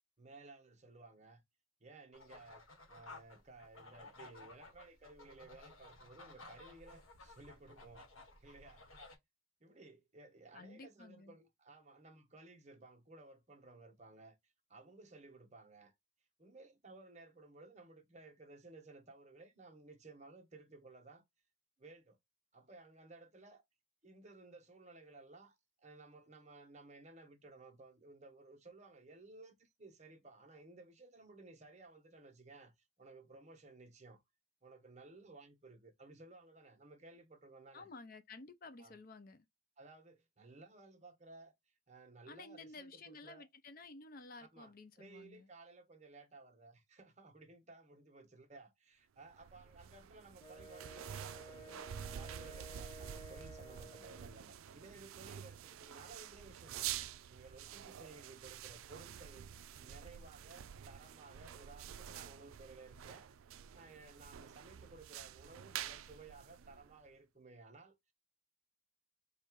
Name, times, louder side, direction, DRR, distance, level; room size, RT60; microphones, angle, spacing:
voice 1, 0.2-1.4 1.8-2.6 2.9-8.1 8.4-8.9 9.6-15.9 16.4-21.2 21.8-22.2 22.5-23.6 24.0-34.2 34.6-37.9 38.8-39.0 39.8-41.5 41.9-43.5 44.5-63.3 63.7-68.0, right 3 dB, 35° right, 1.1 m, -57 dB
sound 1, 2.1-9.2, left 2 dB, 85° left, 1.5 m, -56 dB
voice 2, 10.5-11.4 37.7-39.5 42.3-45.5, left 3 dB, 45° left, 0.5 m, -53 dB
sound 2, 49.3-67.1, right 10 dB, 80° right, 0.4 m, -48 dB
Wind instrument woodwind instrument, 50.4-54.4, right 2 dB, 20° left, 1.0 m, -54 dB
4.4 x 2.5 x 4.5 m
head